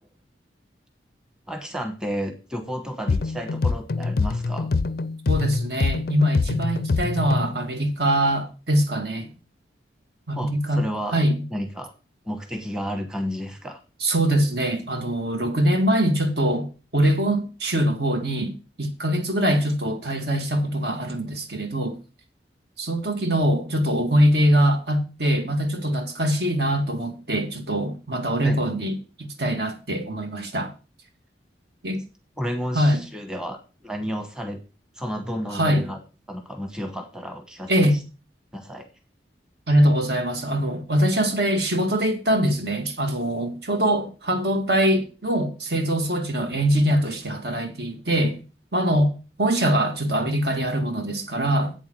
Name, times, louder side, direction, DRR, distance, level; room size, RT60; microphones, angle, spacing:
voice 1, 1.5-4.7 10.3-11.2 11.5-11.9 12.2-13.8 28.4-28.6 32.4-34.6 35.0-36.0 36.3-38.0 38.5-38.9, equal, 5° right, 1.1 m, -32 dB
sound 1, 3.1-7.6, left 4 dB, 55° left, 0.4 m, -25 dB
voice 2, 5.3-9.3 10.3-11.4 14.0-22.0 22.8-30.7 31.8-32.0 32.7-33.0 35.5-35.9 37.7-38.0 39.7-48.4 48.7-49.1 49.4-51.7, right 1 dB, 65° right, 2.0 m, -23 dB
8.4 x 7.2 x 6.1 m
head